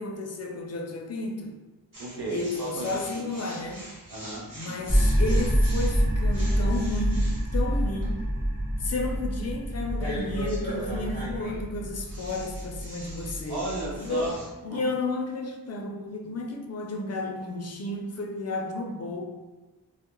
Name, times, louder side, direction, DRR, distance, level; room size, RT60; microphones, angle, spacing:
voice 1, 0.0-1.6 2.3-3.9 4.5-8.2 8.8-13.6 14.0-14.3 14.6-19.2, left 2 dB, 45° left, 2 dB, 0.4 m, -32 dB
sound 1, 1.9-14.5, equal, 55° right, 1.1 m, -42 dB
voice 2, 2.0-3.3 4.1-4.8 13.5-14.4 14.7-14.9, right 2 dB, 85° right, -3 dB, 0.7 m, -35 dB
sound 2, 4.9-14.3, equal, 20° right, 1.0 m, -27 dB
2.3 x 2.0 x 2.9 m, 1.2 s
wide cardioid pair, 70°, 37 cm